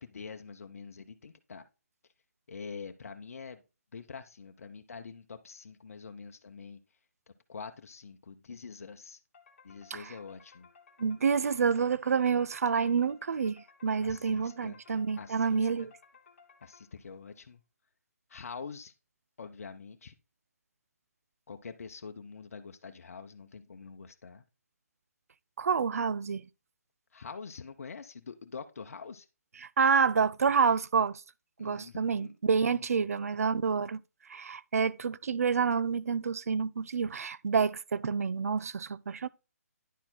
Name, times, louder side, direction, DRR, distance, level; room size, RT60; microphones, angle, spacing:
voice 1, 0.0-1.6 2.5-3.6 3.9-6.8 7.5-9.2 9.6-10.7 14.0-14.8 15.2-15.9 16.6-17.6 18.3-18.9 19.4-20.1 21.5-24.4 27.1-29.3 31.6-32.3 32.6-33.2, left 5 dB, 65° left, 0.8 m, -45 dB
sound 1, 9.3-17.2, left 5 dB, 50° left, 1.5 m, -59 dB
voice 2, 11.0-15.9 25.6-26.5 29.6-31.2 31.6-34.0 34.3-39.3, right 6 dB, 70° right, 0.4 m, -28 dB
10.0 x 4.3 x 4.0 m
figure-of-eight pair, 145°, 8 cm